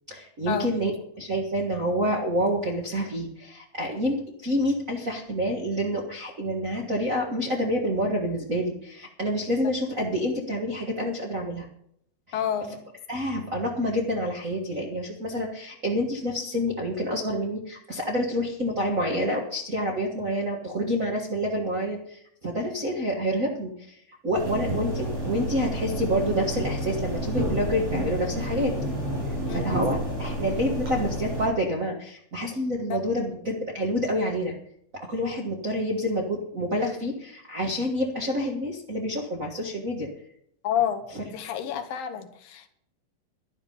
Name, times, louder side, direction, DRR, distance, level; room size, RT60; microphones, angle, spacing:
voice 1, 0.1-11.7 12.3-12.4 13.1-24.0 24.2-28.7 29.5-34.5 34.9-40.1 41.1-41.5, equal, 75° right, -2 dB, 0.7 m, -28 dB
voice 2, 12.3-12.8 29.5-29.9 32.9-33.0 40.6-42.7, left 9 dB, 75° left, 8 dB, 2.7 m, -29 dB
sound 1, 24.3-31.5, equal, 40° right, 8.5 m, -30 dB
12.0 x 11.5 x 5.4 m, 0.69 s
omnidirectional pair, 4.3 m